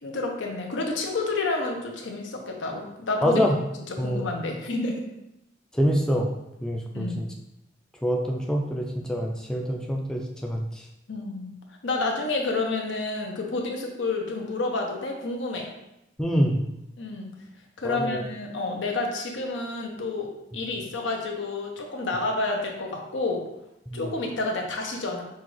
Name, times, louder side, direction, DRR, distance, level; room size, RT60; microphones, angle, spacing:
voice 1, 0.0-3.4 4.0-5.0 6.9-7.3 11.1-11.5 11.8-15.7 17.0-17.3 17.8-23.4 23.9-25.2, left 3 dB, 85° left, 1 dB, 0.8 m, -29 dB
voice 2, 3.2-3.6 4.0-4.3 5.7-6.3 6.6-7.3 8.0-10.9 16.2-16.6 17.8-18.2 23.9-24.1, equal, 5° left, -1 dB, 0.3 m, -25 dB
5.7 x 2.4 x 3.1 m, 0.88 s
head